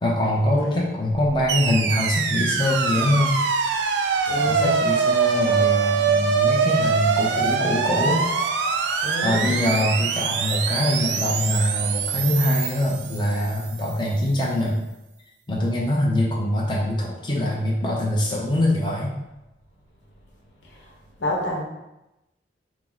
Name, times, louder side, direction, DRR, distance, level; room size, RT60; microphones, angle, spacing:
voice 1, 0.0-3.3 4.4-8.3 9.2-14.8 15.5-19.1, left 1 dB, 25° left, -4 dB, 0.5 m, -23 dB
voice 2, 0.5-0.9 4.3-4.8 9.0-9.6 21.2-21.6, left 1 dB, 90° left, -1 dB, 0.9 m, -28 dB
sound 1, 1.5-13.7, right 5 dB, 80° right, 0.3 m, -23 dB
4.5 x 2.0 x 3.8 m, 0.95 s
head